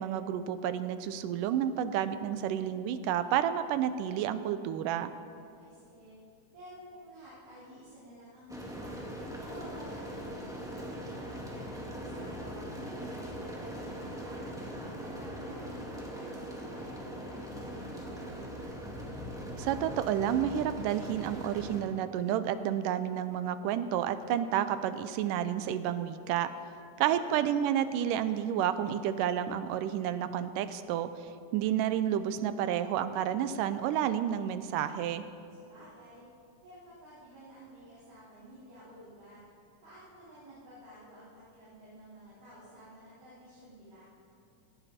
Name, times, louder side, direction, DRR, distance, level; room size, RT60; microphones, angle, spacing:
voice 1, 0.0-5.1 19.6-26.5 27.0-35.2, right 10 dB, 80° right, 12 dB, 2.2 m, -30 dB
voice 2, 5.4-6.2 6.5-9.0 9.4-13.2 13.5-18.7 27.0-27.6 35.5-36.3 36.6-39.5 39.8-44.0, equal, 45° right, -12 dB, 5.1 m, -52 dB
sound 1, 8.5-21.8, equal, ahead, 1.4 m, -41 dB
18.5 x 16.5 x 4.3 m, 2.5 s
omnidirectional pair, 3.9 m